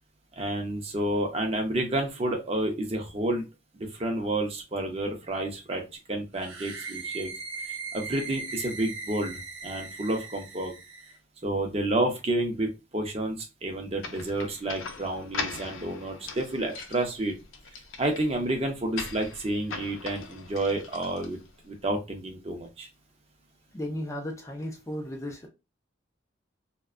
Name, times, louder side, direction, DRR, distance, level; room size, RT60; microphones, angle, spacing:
voice 1, 0.4-3.5 3.7-5.8 6.1-7.3 7.9-10.7 11.4-13.4 13.6-17.3 18.0-21.4 21.6-22.9, right 1 dB, 30° right, 0.6 m, -30 dB
sound 1, 6.3-11.2, right 4 dB, 80° right, 0.6 m, -39 dB
sound 2, 14.0-21.7, left 4 dB, 90° left, 0.5 m, -40 dB
voice 2, 23.7-25.5, left 1 dB, 15° left, 0.4 m, -35 dB
2.5 x 2.1 x 2.4 m
head